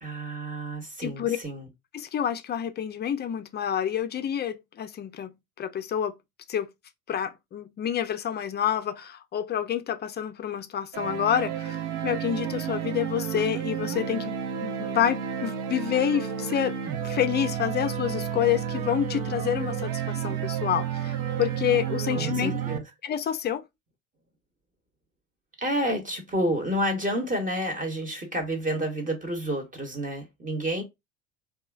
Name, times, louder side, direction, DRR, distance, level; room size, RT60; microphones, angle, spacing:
voice 1, 0.0-1.7 22.2-22.8 25.6-30.8, equal, 20° right, 1.0 m, -29 dB
voice 2, 1.0-1.4 1.9-5.3 5.6-6.1 6.5-6.7 7.1-14.3 14.6-16.7 17.0-22.6 23.0-23.6, left 9 dB, 25° left, 0.5 m, -28 dB
sound 1, 10.9-22.8, right 9 dB, 55° right, 0.6 m, -31 dB
2.9 x 2.4 x 2.4 m
hypercardioid pair, 70°, 37 cm